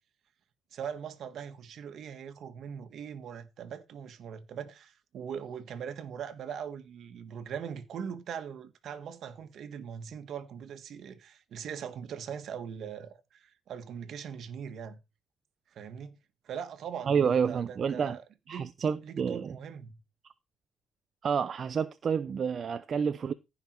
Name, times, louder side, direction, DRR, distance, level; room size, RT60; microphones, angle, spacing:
voice 1, 0.7-15.0 15.7-16.2 16.4-18.2 18.5-18.7 19.0-20.0, right 7 dB, 60° right, 1.7 m, -41 dB
voice 2, 17.1-18.2 18.5-19.5 21.2-23.3, right 6 dB, 45° right, 0.7 m, -29 dB
15.0 x 5.7 x 4.7 m
cardioid pair, 90°, 0 cm